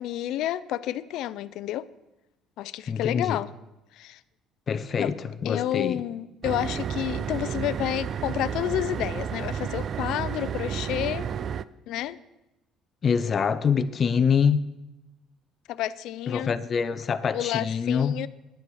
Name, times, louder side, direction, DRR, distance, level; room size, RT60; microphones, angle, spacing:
voice 1, 0.0-1.9 2.6-3.5 3.9-4.2 5.0-5.1 5.4-11.3 11.9-12.2 15.7-16.6 17.3-18.3, left 13 dB, 70° left, 0.5 m, -30 dB
voice 2, 2.9-3.4 4.7-5.2 5.4-6.0 13.0-14.7 16.3-18.1, left 6 dB, 35° left, 0.7 m, -25 dB
sound 1, 6.4-11.6, right 8 dB, 40° right, 0.4 m, -31 dB
10.5 x 9.9 x 6.3 m
cardioid pair, 135°, 0 cm